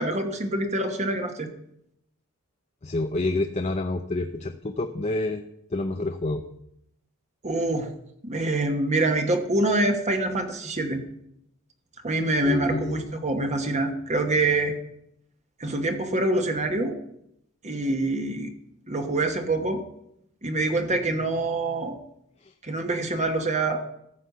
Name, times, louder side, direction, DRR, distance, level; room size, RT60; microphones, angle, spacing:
voice 1, 0.0-1.5 7.4-7.9 8.2-11.0 12.0-14.7 15.6-17.0 17.6-18.5 18.9-19.8 20.4-22.0 22.6-23.8, right 2 dB, 30° right, 5 dB, 1.2 m, -25 dB
voice 2, 2.8-5.4 5.7-6.4 12.4-13.1 22.4-22.5, left 2 dB, 30° left, 5 dB, 0.6 m, -28 dB
13.5 x 7.8 x 6.7 m, 0.76 s
head